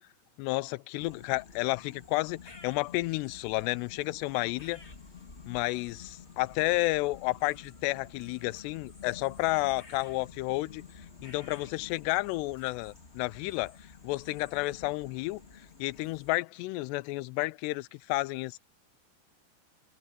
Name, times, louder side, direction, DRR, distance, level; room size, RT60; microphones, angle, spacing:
voice 1, 0.4-4.8 5.5-10.8 11.2-13.8 14.0-15.4 15.8-18.6, left 22 dB, 85° left, 2.5 m, -31 dB
sound 1, 1.0-16.4, left 5 dB, 25° left, 1.5 m, -50 dB
omnidirectional pair, 5.3 m